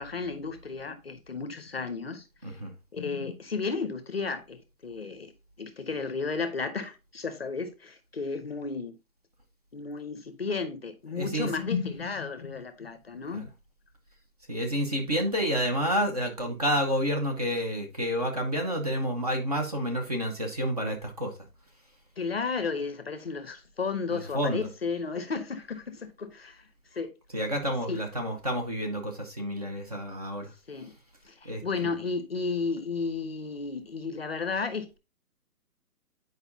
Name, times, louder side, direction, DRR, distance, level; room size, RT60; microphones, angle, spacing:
voice 1, 0.0-2.2 2.9-5.3 5.6-9.0 9.7-13.5 22.2-26.6 26.9-27.1 27.9-28.0 30.7-30.9 31.3-35.0, left 4 dB, 40° left, 0.7 m, -33 dB
voice 2, 2.4-2.7 11.1-11.5 13.3-13.5 14.5-21.3 24.1-24.7 27.3-30.5 31.4-31.9, equal, 25° right, 0.8 m, -29 dB
9.1 x 4.8 x 2.6 m
hypercardioid pair, 170°, 47 cm